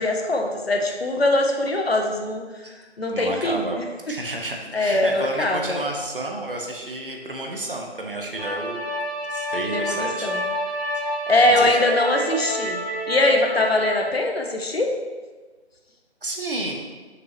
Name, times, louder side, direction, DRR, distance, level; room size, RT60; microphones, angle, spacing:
voice 1, 0.0-2.4 3.0-3.8 4.7-5.8 9.7-10.4 11.3-12.8 13.1-14.9, left 2 dB, 60° left, 3 dB, 0.9 m, -22 dB
voice 2, 3.1-3.8 4.1-8.8 9.3-10.3 10.6-10.8 11.6-11.7 16.2-16.7, right 1 dB, 50° right, 1 dB, 1.0 m, -30 dB
sound 1, 8.4-14.0, equal, 5° right, 1.6 m, -28 dB
6.4 x 5.1 x 3.0 m, 1.3 s
figure-of-eight pair, 175°, 35 cm